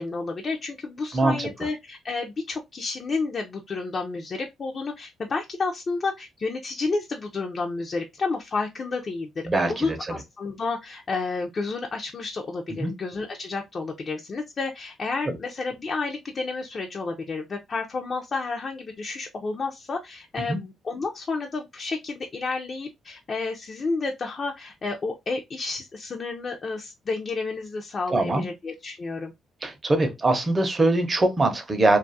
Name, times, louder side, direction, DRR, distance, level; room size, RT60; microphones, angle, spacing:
voice 1, 0.0-9.3 9.7-29.3, left 3 dB, 40° left, 0.4 m, -31 dB
voice 2, 1.1-1.5 9.5-10.0 12.8-12.9 15.3-15.4 20.5-20.6 28.1-28.5 29.6-32.0, right 2 dB, 30° right, 0.6 m, -22 dB
2.5 x 2.3 x 2.5 m
cardioid pair, 90°, 0 cm